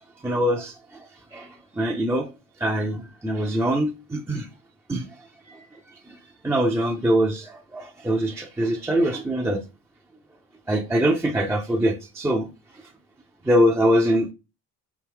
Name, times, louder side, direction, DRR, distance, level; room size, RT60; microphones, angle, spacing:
voice 1, 0.2-1.1 1.3-2.3 2.6-4.5 4.9-5.1 5.5-5.7 6.1-6.2 6.4-9.6 10.7-12.5 13.4-14.3, equal, 10° right, 0.4 m, -23 dB
4.5 x 2.6 x 3.5 m
cardioid pair, 150°, 36 cm